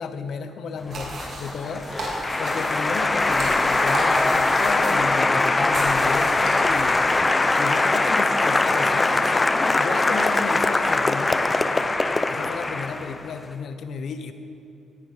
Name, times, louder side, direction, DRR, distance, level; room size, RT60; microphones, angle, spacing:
voice 1, 0.0-1.9 2.4-7.1 7.6-11.4 12.3-14.3, left 5 dB, 60° left, 9 dB, 1.0 m, -33 dB
Applause, 0.9-13.3, left 2 dB, 25° left, 0.7 m, -22 dB
sound 1, 0.9-6.8, right 2 dB, 65° right, 3.7 m, -35 dB
Trumpet, 2.2-10.1, right 4 dB, 45° right, 1.3 m, -44 dB
17.5 x 10.5 x 5.2 m, 2.8 s
cardioid pair, 90°, 0 cm